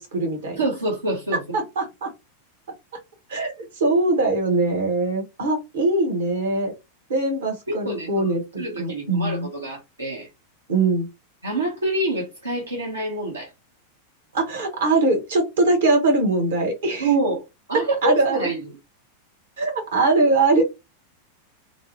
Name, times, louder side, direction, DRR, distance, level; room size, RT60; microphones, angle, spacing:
voice 1, 0.0-0.6 1.5-2.1 3.3-6.7 7.1-9.5 10.7-11.1 14.3-17.1 17.7-18.4 19.6-20.6, right 2 dB, 60° right, 1.0 m, -22 dB
voice 2, 0.6-1.6 7.7-10.3 11.4-13.5 17.0-17.4 17.7-18.6, right 2 dB, 75° right, 0.7 m, -26 dB
2.6 x 2.1 x 2.7 m
figure-of-eight pair, 90°, 0 cm